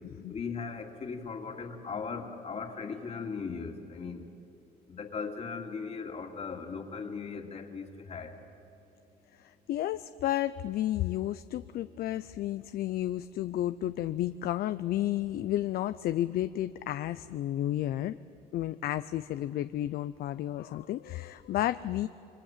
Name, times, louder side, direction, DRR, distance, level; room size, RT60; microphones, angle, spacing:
voice 1, 0.3-4.2 4.9-8.4, left 5 dB, 40° left, 3 dB, 2.7 m, -38 dB
voice 2, 9.4-18.2 18.5-22.1, left 13 dB, 65° left, 12 dB, 0.6 m, -32 dB
28.0 x 22.5 x 7.4 m, 3.0 s
cardioid pair, 110°, 17 cm